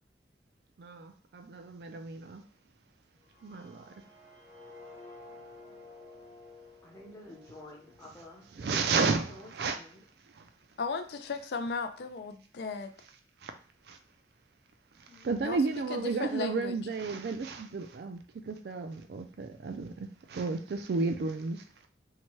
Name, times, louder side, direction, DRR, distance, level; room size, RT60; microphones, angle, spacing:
voice 1, 0.8-2.4 3.4-3.9 8.6-9.8 10.3-10.5 13.4-13.5 13.9-14.0 15.2-18.2 18.4-21.6, right 4 dB, 65° right, 0.4 m, -32 dB
sound 1, 3.2-9.2, left 2 dB, 45° left, 1.0 m, -53 dB
voice 2, 6.8-10.0 15.1-15.7, left 1 dB, 15° left, 0.7 m, -50 dB
voice 3, 10.8-12.9 15.4-15.6 15.9-16.7, left 4 dB, 65° left, 0.4 m, -35 dB
2.8 x 2.2 x 3.0 m
head